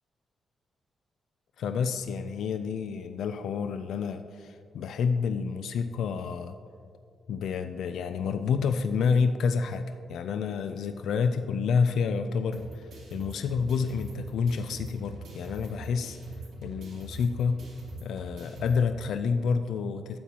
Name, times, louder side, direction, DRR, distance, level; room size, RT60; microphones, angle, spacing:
voice 1, 1.6-6.6 7.3-9.8 10.1-16.2 16.6-17.6 18.0-20.2, left 5 dB, 85° left, 9 dB, 0.3 m, -29 dB
sound 1, 12.5-18.8, right 1 dB, 90° right, 2.6 m, -43 dB
12.5 x 8.4 x 2.9 m, 2.2 s
wide cardioid pair, 170°, 0 cm